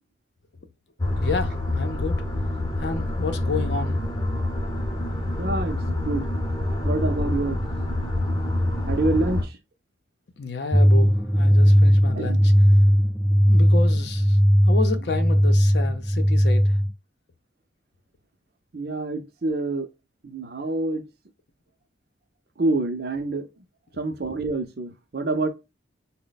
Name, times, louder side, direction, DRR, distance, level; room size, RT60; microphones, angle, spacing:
sound 1, 1.0-9.4, left 1 dB, 20° left, 0.7 m, -26 dB
voice 1, 1.2-2.2 2.8-4.1 10.4-12.5 13.5-14.4 14.6-16.7, left 3 dB, 65° left, 0.6 m, -30 dB
voice 2, 5.4-6.3 6.8-7.6 8.9-9.6 12.2-12.4 14.9-15.0 18.7-19.9 20.2-21.0 22.6-23.5 24.0-25.5, right 2 dB, 55° right, 0.6 m, -27 dB
sound 2, 10.7-16.9, equal, ahead, 0.3 m, -18 dB
4.1 x 2.1 x 3.9 m
head